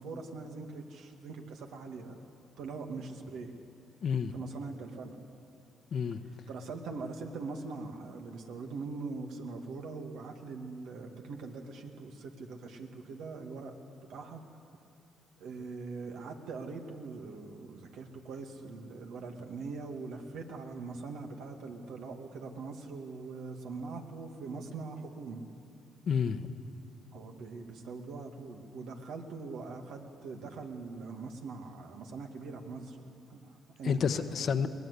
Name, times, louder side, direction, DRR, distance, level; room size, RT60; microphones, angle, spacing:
voice 1, 0.0-2.2 2.6-3.5 4.3-5.2 6.5-14.4 15.4-25.4 27.1-33.0 33.3-34.3, right 4 dB, 80° right, 3 dB, 2.2 m, -42 dB
voice 2, 4.0-4.3 5.9-6.2 26.1-26.5 33.8-34.7, left 6 dB, 60° left, 9 dB, 1.1 m, -29 dB
22.5 x 18.5 x 8.3 m, 2.5 s
cardioid pair, 85°, 0 cm